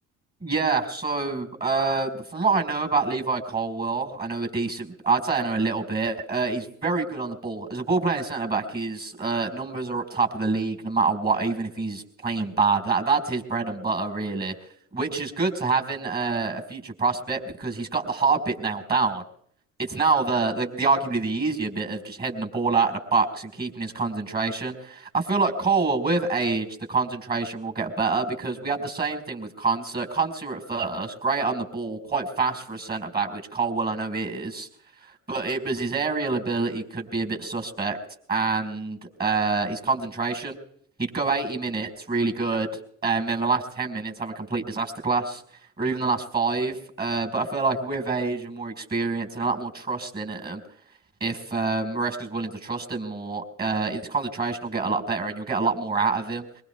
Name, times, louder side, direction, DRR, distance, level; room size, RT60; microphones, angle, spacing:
voice 1, 0.4-14.5 14.9-19.2 19.8-34.7 35.3-38.0 38.3-40.6 41.0-42.7 43.0-45.4 45.8-50.6 51.2-56.4, right 4 dB, 25° right, 6 dB, 4.7 m, -26 dB
23.0 x 22.0 x 2.3 m, 0.63 s
supercardioid pair, 75°, 38 cm